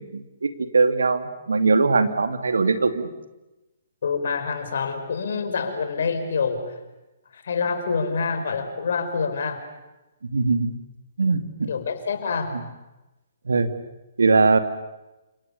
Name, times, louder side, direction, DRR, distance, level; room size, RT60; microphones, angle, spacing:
voice 1, 0.0-3.1 10.3-10.7 11.2-11.7 12.5-12.6 13.5-13.7 14.2-14.6, right 4 dB, 75° right, 9 dB, 2.5 m, -21 dB
voice 2, 4.0-6.8 7.3-9.6 11.7-12.6, left 5 dB, 60° left, 7 dB, 5.1 m, -26 dB
30.0 x 27.5 x 7.0 m, 1.0 s
figure-of-eight pair, 130°, 0 cm